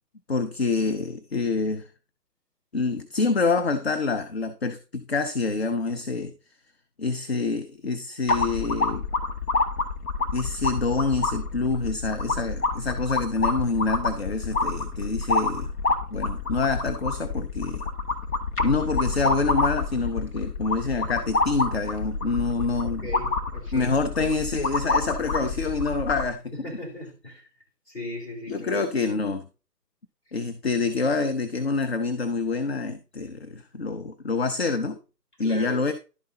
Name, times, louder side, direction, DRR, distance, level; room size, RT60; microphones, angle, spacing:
voice 1, 0.3-1.9 2.7-6.3 7.0-9.1 10.3-15.7 16.1-17.8 18.6-23.1 23.7-26.5 28.5-29.5 30.3-35.0 35.4-35.9, left 4 dB, 40° left, 0.6 m, -26 dB
sound 1, 8.3-26.3, left 3 dB, 65° left, 2.0 m, -28 dB
voice 2, 22.8-23.9 26.5-27.4 27.9-29.1 35.4-35.8, left 1 dB, 20° left, 3.2 m, -37 dB
11.5 x 5.5 x 3.9 m
figure-of-eight pair, 155°, 48 cm